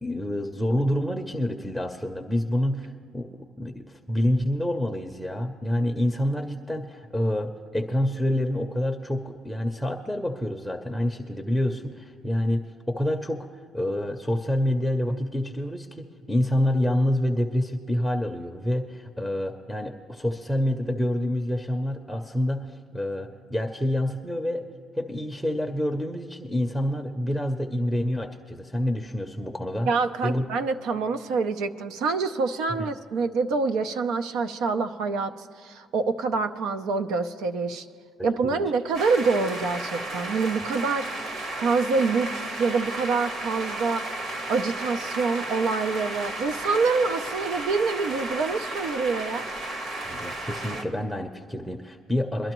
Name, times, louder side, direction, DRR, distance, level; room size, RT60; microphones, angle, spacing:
voice 1, 0.0-12.6 12.9-13.5 13.7-24.6 24.9-29.9 30.2-30.4 38.2-38.6 50.0-52.5, left 1 dB, ahead, 3 dB, 0.6 m, -27 dB
voice 2, 29.9-35.3 35.6-37.9 38.2-41.1 41.6-44.0 44.5-49.5, right 4 dB, 85° right, 8 dB, 0.6 m, -26 dB
sound 1, 38.9-50.8, right 2 dB, 55° right, 1.4 m, -33 dB
23.0 x 12.0 x 3.0 m, 2.3 s
cardioid pair, 135°, 0 cm